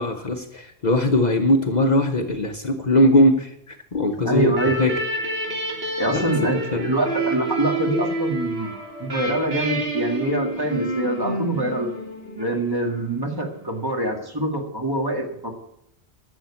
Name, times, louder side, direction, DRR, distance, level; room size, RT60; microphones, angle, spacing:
voice 1, 0.0-4.5 4.8-4.9 6.1-6.9, left 1 dB, 45° left, 5 dB, 1.0 m, -20 dB
voice 2, 4.2-4.8 6.0-6.6 6.8-8.7 9.0-11.9 12.4-15.5, right 1 dB, 20° right, 2 dB, 1.9 m, -24 dB
sound 1, 4.5-13.0, right 1 dB, 65° right, 3.2 m, -28 dB
12.0 x 7.0 x 8.3 m, 0.77 s
omnidirectional pair, 1.1 m